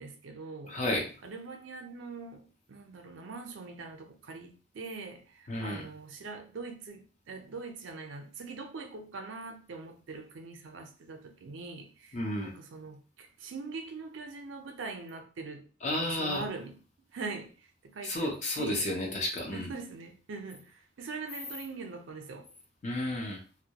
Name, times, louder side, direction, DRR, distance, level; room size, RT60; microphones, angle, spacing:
voice 1, 0.0-0.8 1.2-15.7 16.0-16.8 17.1-18.9 19.5-22.5, right 4 dB, 80° right, 0.5 m, -43 dB
voice 2, 0.7-1.1 5.5-5.9 12.1-12.5 15.8-16.4 18.0-19.7 22.8-23.4, left 1 dB, 40° left, 0.6 m, -32 dB
2.2 x 2.0 x 2.8 m
head